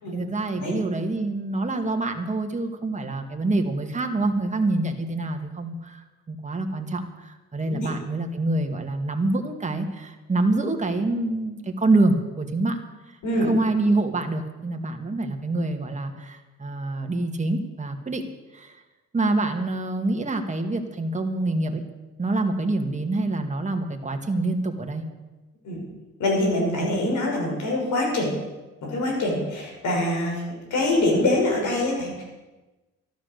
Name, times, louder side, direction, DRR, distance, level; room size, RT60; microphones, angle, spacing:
voice 1, 0.1-12.8 13.4-18.3 18.5-18.8 19.1-21.9 22.2-25.0, right 2 dB, 25° right, 5 dB, 2.0 m, -26 dB
voice 2, 26.2-28.3 28.8-30.4 30.7-32.2, left 1 dB, 75° left, -1 dB, 6.2 m, -24 dB
13.0 x 12.5 x 6.7 m, 1.1 s
cardioid pair, 90°, 30 cm